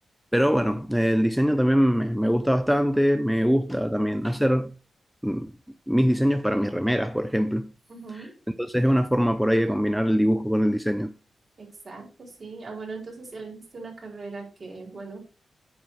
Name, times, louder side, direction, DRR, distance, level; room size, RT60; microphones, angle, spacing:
voice 1, 0.3-4.7 5.2-5.5 5.9-7.7 8.6-11.1, equal, ahead, 0.6 m, -23 dB
voice 2, 7.9-8.3 11.6-15.2, right 4 dB, 40° right, 4.7 m, -39 dB
9.2 x 7.3 x 4.9 m
wide cardioid pair, 115°, 0 cm